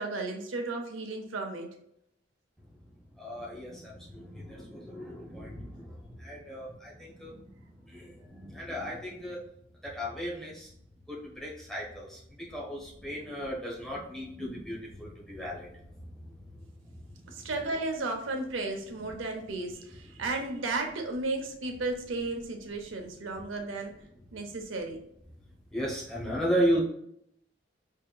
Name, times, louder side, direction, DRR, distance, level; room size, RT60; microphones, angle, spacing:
voice 1, 0.0-1.7 17.3-23.9 24.3-25.0, right 2 dB, 85° right, 3 dB, 0.8 m, -34 dB
voice 2, 3.2-7.4 7.9-9.4 9.8-10.7 11.1-15.8 16.2-16.3 25.7-26.8, equal, ahead, -5 dB, 1.0 m, -35 dB
5.4 x 2.8 x 2.3 m, 0.74 s
head